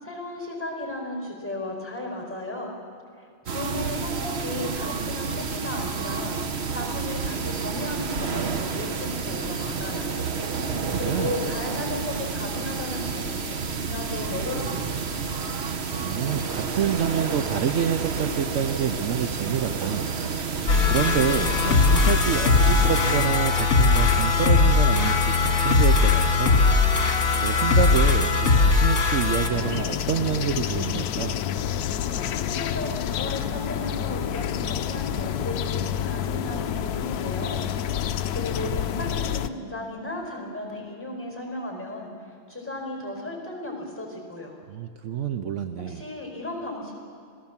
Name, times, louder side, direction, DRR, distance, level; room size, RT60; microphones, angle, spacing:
voice 1, 0.0-2.7 3.4-10.1 10.7-15.0 31.8-37.6 37.9-42.1 42.5-44.6 45.9-46.9, left 1 dB, 5° left, 1 dB, 4.5 m, -35 dB
sound 1, 3.5-23.3, right 5 dB, 45° right, 1.0 m, -30 dB
voice 2, 10.6-11.3 15.9-20.1 20.4-26.6 27.4-31.4 44.7-46.0, right 8 dB, 70° right, 8 dB, 0.7 m, -28 dB
sound 2, 20.7-29.5, left 4 dB, 45° left, 2.6 m, -20 dB
sound 3, 29.5-39.5, left 9 dB, 65° left, 1.0 m, -28 dB
27.0 x 17.5 x 7.3 m, 2.3 s
omnidirectional pair, 2.1 m